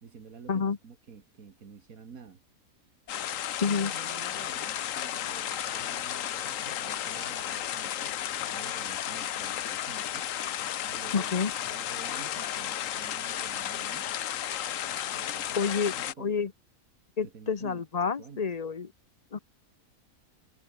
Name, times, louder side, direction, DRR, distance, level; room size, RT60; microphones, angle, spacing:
voice 1, 0.0-2.4 3.6-10.3 10.8-14.1 15.1-16.3 17.2-17.9 18.2-18.5, right 6 dB, 75° right, 2.2 m, -49 dB
sound 1, 3.1-16.1, left 11 dB, 65° left, 1.1 m, -33 dB
voice 2, 3.6-3.9 11.1-11.5 15.6-16.5 17.2-18.9 19.3-19.4, left 5 dB, 30° left, 0.8 m, -29 dB
omnidirectional pair, 1.5 m